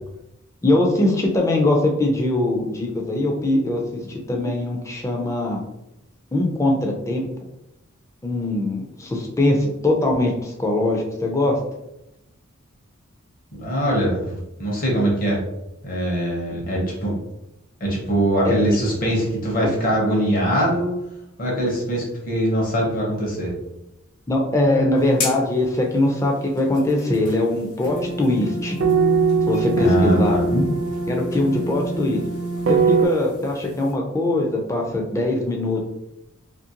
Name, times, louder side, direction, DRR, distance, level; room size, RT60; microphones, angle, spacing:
voice 1, 0.6-3.8 4.3-5.6 6.3-7.3 8.2-11.6 18.4-18.7 24.3-28.8 29.5-30.7 31.1-32.2 32.7-35.9, left 2 dB, 15° left, 0 dB, 0.4 m, -21 dB
voice 2, 13.5-15.4 15.8-17.1 17.8-20.9 21.4-23.5 29.8-30.4, right 1 dB, 40° left, -3 dB, 0.8 m, -22 dB
sound 1, 25.0-33.9, left 4 dB, 85° left, 0.7 m, -38 dB
sound 2, 27.8-33.1, right 4 dB, 55° right, 0.4 m, -22 dB
2.8 x 2.5 x 2.8 m, 0.89 s
head